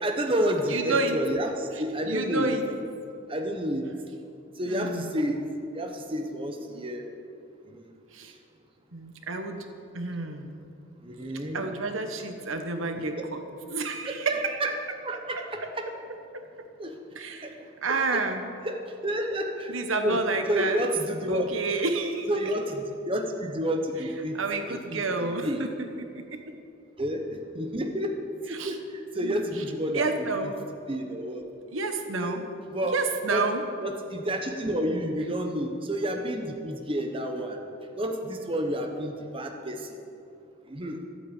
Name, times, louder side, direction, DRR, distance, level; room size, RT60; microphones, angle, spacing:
voice 1, 0.0-2.5 3.3-3.9 4.6-5.4 5.7-7.0 7.7-7.9 11.0-11.7 12.9-13.1 14.1-14.7 15.0-15.9 16.8-16.9 17.4-17.5 18.1-18.2 18.6-19.7 20.0-21.5 22.3-24.4 24.7-25.7 27.0-28.2 28.5-30.3 30.9-31.5 32.2-32.4 32.7-33.0 33.3-33.5 33.8-37.6 37.9-40.0 40.7-41.0, equal, 25° right, 3 dB, 1.0 m, -30 dB
voice 2, 0.7-1.2 1.7-2.6 4.7-5.1 8.1-8.3 8.9-9.7 9.9-10.7 11.5-13.4 13.7-14.6 15.6-15.7 17.1-17.5 17.8-18.4 19.7-20.8 21.3-22.3 24.3-26.4 28.5-28.8 29.2-29.6 29.9-30.6 31.7-32.5 32.9-33.6, right 3 dB, 75° right, 6 dB, 1.1 m, -30 dB
13.0 x 8.7 x 8.1 m, 2.6 s
head